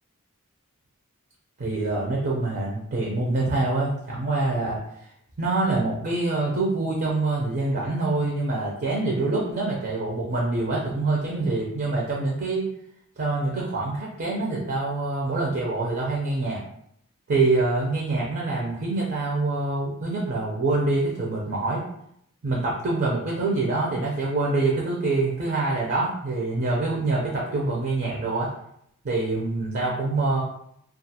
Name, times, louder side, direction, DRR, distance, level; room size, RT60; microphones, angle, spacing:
voice 1, 1.6-4.8 5.4-12.7 13.2-16.6 17.3-21.8 22.4-28.5 29.0-30.4, right 2 dB, 45° right, -3 dB, 0.5 m, -25 dB
2.4 x 2.4 x 2.7 m, 0.72 s
head